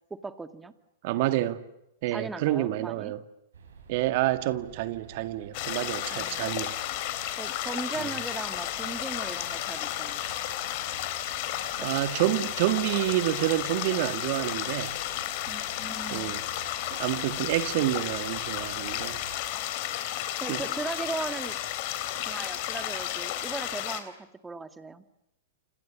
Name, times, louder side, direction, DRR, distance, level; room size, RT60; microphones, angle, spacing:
voice 1, 0.1-0.7 2.1-3.1 6.1-6.5 7.4-10.3 15.5-16.3 20.4-21.6 22.2-25.0, right 3 dB, 10° right, 2.1 m, -38 dB
voice 2, 1.0-1.6 2.0-3.2 3.9-6.7 8.0-8.1 11.8-15.0 16.1-16.4 17.0-19.2 20.5-20.6, right 15 dB, 55° right, 2.0 m, -28 dB
sound 1, 3.5-19.5, right 6 dB, 75° right, 6.9 m, -51 dB
sound 2, 5.5-24.0, left 13 dB, 50° left, 3.8 m, -33 dB
29.0 x 27.5 x 7.4 m
hypercardioid pair, 110°, 0 cm